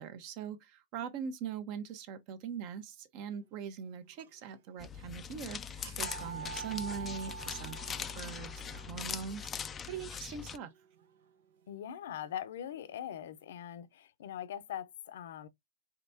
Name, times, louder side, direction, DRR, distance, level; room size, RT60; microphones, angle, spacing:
voice 1, 0.0-7.8 8.1-10.7, right 7 dB, 45° right, 1.1 m, -42 dB
sound 1, 4.1-4.7 5.0-5.1 5.7-11.6, right 6 dB, 70° right, 1.0 m, -47 dB
sound 2, 4.8-10.6, left 7 dB, 20° left, 0.4 m, -41 dB
voice 2, 11.7-15.5, left 10 dB, 70° left, 0.7 m, -42 dB
5.0 x 3.4 x 2.7 m
hypercardioid pair, 130°, 0 cm